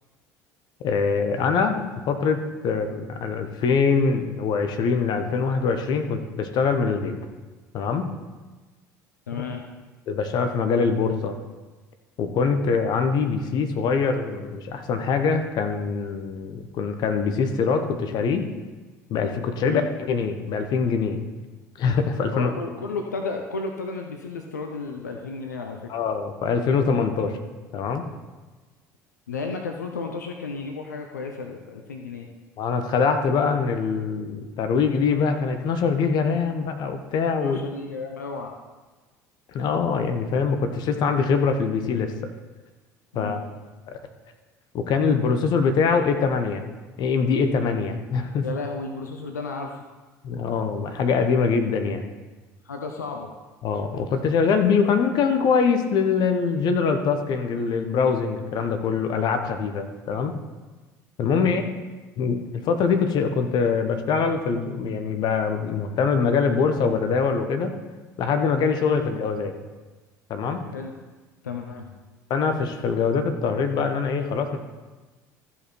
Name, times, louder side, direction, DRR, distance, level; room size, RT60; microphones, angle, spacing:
voice 1, 0.8-7.1 7.7-8.1 10.1-11.4 12.2-18.4 19.1-19.8 20.1-21.2 21.8-22.5 25.9-27.4 27.7-28.0 32.6-37.6 39.5-42.1 43.1-43.4 44.7-46.6 47.0-48.5 50.2-52.1 53.6-60.3 61.2-61.6 62.2-67.7 68.2-69.5 70.3-70.6 72.3-74.6, left 5 dB, 50° left, 6 dB, 1.1 m, -23 dB
voice 2, 9.3-9.6 19.6-19.9 22.3-25.9 29.3-32.3 37.4-38.5 43.1-43.4 48.4-49.8 52.6-53.3 61.2-61.5 69.0-69.1 70.7-70.9 71.4-71.9, left 4 dB, 85° left, 3 dB, 0.7 m, -33 dB
14.0 x 5.4 x 4.5 m, 1.3 s
figure-of-eight pair, 60°, 9 cm